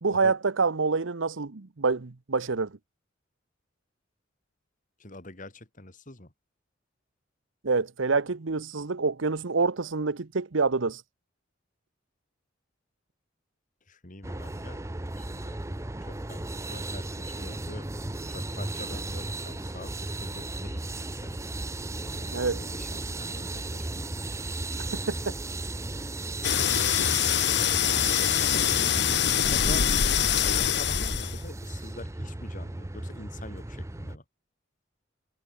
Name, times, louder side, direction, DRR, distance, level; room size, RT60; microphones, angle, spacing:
voice 1, 0.0-2.8 7.6-11.0 22.3-22.6 24.8-24.9 25.3-25.4, right 4 dB, 80° right, 0.9 m, -27 dB
voice 2, 5.0-6.3 13.9-14.8 15.2-15.6 16.0-17.9 18.3-21.4 22.2-24.1 27.2-34.2, left 2 dB, 40° left, 3.0 m, -45 dB
sound 1, 14.2-34.2, right 2 dB, 15° right, 0.6 m, -35 dB
sound 2, 26.4-31.5, left 9 dB, 60° left, 1.7 m, -24 dB
head